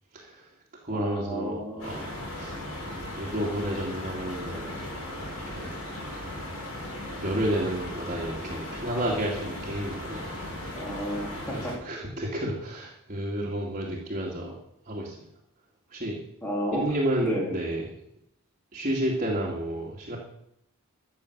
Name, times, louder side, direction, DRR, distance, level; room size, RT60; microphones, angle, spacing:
voice 1, 0.1-0.5 0.8-2.6 3.1-4.8 5.5-5.7 6.8-10.4 11.5-14.6 14.9-15.2 15.9-16.2 16.7-17.9 18.7-20.2, right 1 dB, 35° right, -4 dB, 2.3 m, -31 dB
voice 2, 0.9-1.9 10.7-11.7 16.4-16.9 17.2-17.6, equal, 10° left, -2 dB, 3.1 m, -32 dB
sound 1, 1.8-11.7, left 1 dB, 65° left, 5.6 m, -37 dB
13.0 x 7.2 x 8.0 m, 0.74 s
head